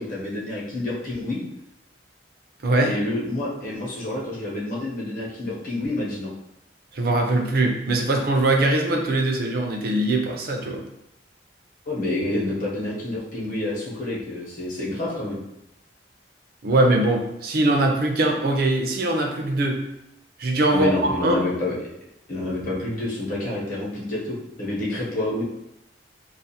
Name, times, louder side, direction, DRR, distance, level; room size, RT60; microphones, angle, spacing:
voice 1, 0.0-1.4 2.8-6.3 11.9-15.4 20.7-21.7 22.3-25.4, left 1 dB, 45° left, -5 dB, 0.8 m, -28 dB
voice 2, 2.6-3.0 6.9-10.8 16.6-19.8 20.4-20.9 21.2-21.4, right 2 dB, 50° right, 2 dB, 0.4 m, -21 dB
2.4 x 2.4 x 2.7 m, 0.82 s
head